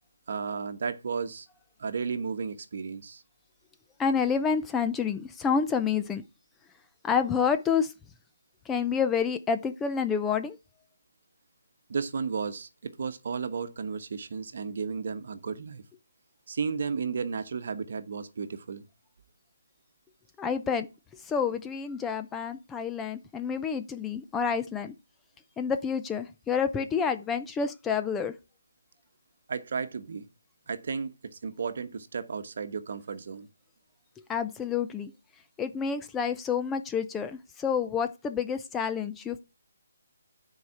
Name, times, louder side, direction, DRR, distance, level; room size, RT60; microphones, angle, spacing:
voice 1, 0.3-1.5 1.8-3.2 11.9-15.8 16.5-18.9 29.5-30.3 30.7-33.5, right 5 dB, 50° right, 1.1 m, -33 dB
voice 2, 4.0-6.2 7.0-7.9 8.7-10.6 20.4-20.9 21.2-24.9 25.6-28.3 34.3-35.1 35.6-39.4, left 6 dB, 10° left, 0.5 m, -28 dB
9.4 x 4.8 x 5.7 m
hypercardioid pair, 170°, 0 cm